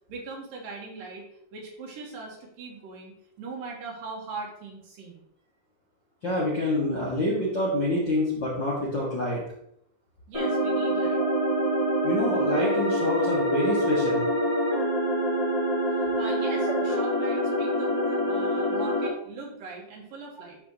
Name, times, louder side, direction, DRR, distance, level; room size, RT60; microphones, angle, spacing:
voice 1, 0.1-1.2 1.5-5.2 10.3-11.2 16.0-20.6, right 3 dB, 65° right, -1 dB, 3.0 m, -40 dB
voice 2, 6.2-9.4 11.2-11.3 12.0-14.2 16.6-16.7, left 1 dB, 45° left, -7 dB, 1.6 m, -27 dB
sound 1, 10.3-19.1, equal, 10° left, 2.8 m, -25 dB
12.0 x 5.1 x 3.0 m, 0.72 s
omnidirectional pair, 4.5 m